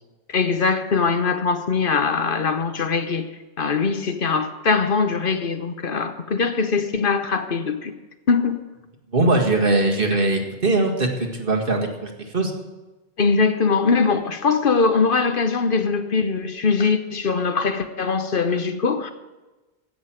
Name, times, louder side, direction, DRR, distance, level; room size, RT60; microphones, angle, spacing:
voice 1, 0.3-3.2 3.6-7.9 8.3-8.6 13.2-19.1, left 4 dB, 60° left, 1.1 m, -21 dB
voice 2, 9.1-12.5, right 2 dB, 60° right, 2.2 m, -21 dB
16.0 x 6.3 x 8.9 m
omnidirectional pair, 1.0 m